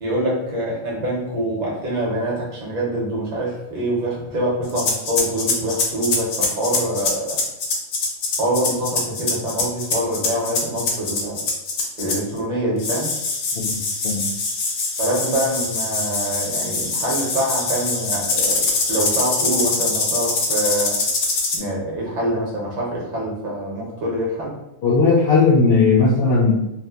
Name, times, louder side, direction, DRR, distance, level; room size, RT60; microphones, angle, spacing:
voice 1, 0.0-7.4 8.4-11.4 12.0-13.1 15.0-21.0 21.5-24.5, right 1 dB, 40° right, -4 dB, 0.8 m, -25 dB
sound 1, 4.7-12.4 12.8-21.6, left 3 dB, 85° left, 1.0 m, -23 dB
voice 2, 13.7-14.2 24.8-26.5, left 4 dB, 65° left, -5 dB, 0.7 m, -16 dB
2.8 x 2.3 x 2.3 m, 0.86 s
omnidirectional pair, 1.3 m